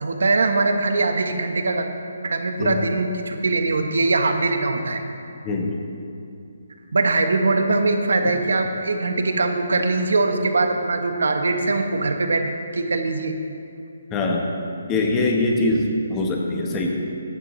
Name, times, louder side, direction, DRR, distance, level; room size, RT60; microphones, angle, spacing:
voice 1, 0.0-1.9 2.2-5.0 6.9-13.3, right 3 dB, 80° right, 6 dB, 1.0 m, -22 dB
voice 2, 14.1-14.5 14.9-16.9, left 2 dB, 15° left, 0 dB, 1.0 m, -22 dB
13.5 x 9.5 x 3.1 m, 2.6 s
hypercardioid pair, 165°, 0 cm